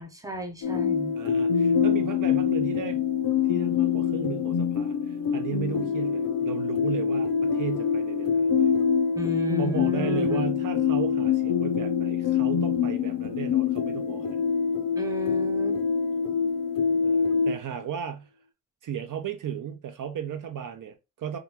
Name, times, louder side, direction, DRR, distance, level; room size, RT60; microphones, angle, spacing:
voice 1, 0.0-1.2 9.1-10.5 14.9-15.8, left 1 dB, 10° right, 0.5 m, -33 dB
sound 1, 0.6-17.6, left 6 dB, 75° left, 0.6 m, -25 dB
voice 2, 1.1-3.0 3.5-8.7 9.6-14.4 17.0-18.3 18.8-21.4, right 9 dB, 65° right, 0.5 m, -35 dB
3.6 x 2.3 x 2.8 m
wide cardioid pair, 150°, 34 cm